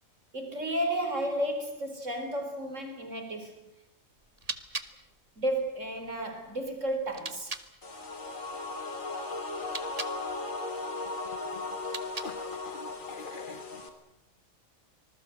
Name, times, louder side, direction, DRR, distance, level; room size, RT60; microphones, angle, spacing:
voice 1, 0.3-3.6 5.4-7.6, right 1 dB, 65° right, 5 dB, 4.2 m, -32 dB
sound 1, 4.2-7.7 9.5-10.2 11.7-12.6, right 4 dB, 30° right, 1.3 m, -42 dB
sound 2, 7.8-13.9, left 3 dB, 75° left, 3.1 m, -37 dB
voice 2, 11.2-11.6 12.2-13.9, left 4 dB, 40° left, 14 dB, 1.3 m, -45 dB
25.5 x 20.5 x 7.7 m, 0.83 s
omnidirectional pair, 1.4 m